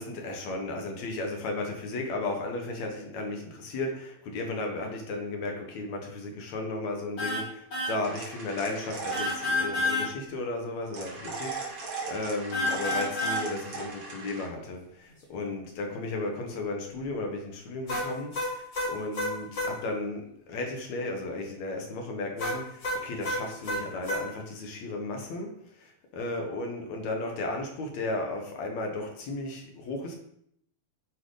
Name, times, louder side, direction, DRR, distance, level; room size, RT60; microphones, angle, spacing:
voice 1, 0.0-30.2, left 2 dB, 65° left, 2 dB, 2.8 m, -34 dB
sound 1, 7.2-7.4 7.7-7.9 9.1-10.1 12.5-13.4 17.9-19.7 22.4-24.2, left 1 dB, 35° left, 3.8 m, -29 dB
sound 2, 8.0-9.6 10.9-14.5, right 4 dB, 60° right, 3.6 m, -37 dB
9.2 x 7.9 x 4.0 m, 0.71 s
omnidirectional pair, 3.5 m